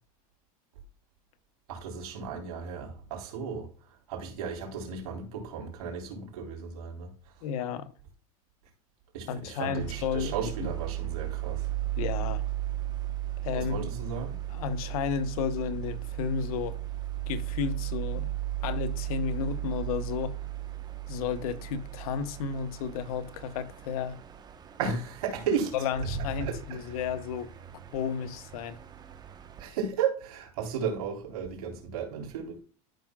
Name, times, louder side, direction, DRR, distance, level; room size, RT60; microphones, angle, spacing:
voice 1, 1.7-3.7 4.1-7.1 9.1-11.7 13.6-14.4 24.8-25.7 26.1-27.0 29.6-32.6, right 6 dB, 80° right, 3.5 m, -34 dB
voice 2, 7.4-7.9 9.3-10.3 10.6-10.7 12.0-12.4 13.4-13.9 14.5-16.8 17.3-18.3 18.6-20.3 21.1-24.2 24.9-25.0 25.7-27.5 27.9-28.8, left 6 dB, 75° left, 1.0 m, -32 dB
sound 1, 9.8-29.7, right 14 dB, 20° right, 1.0 m, -36 dB
13.0 x 5.9 x 2.3 m
supercardioid pair, 135°, 18 cm